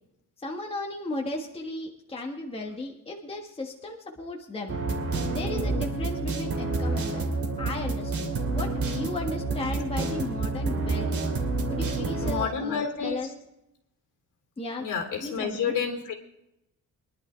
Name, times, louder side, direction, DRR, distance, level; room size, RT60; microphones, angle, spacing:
voice 1, 0.4-4.8 5.2-7.3 7.6-11.1 11.7-13.3 14.6-14.9 15.2-15.7, left 2 dB, 15° left, 0 dB, 1.6 m, -35 dB
sound 1, 4.7-12.4, right 3 dB, 40° right, 2.7 m, -29 dB
voice 2, 9.6-10.1 12.2-13.2 14.8-16.1, left 6 dB, 65° left, 3 dB, 3.5 m, -30 dB
24.0 x 11.5 x 3.4 m, 0.85 s
cardioid pair, 165°, 34 cm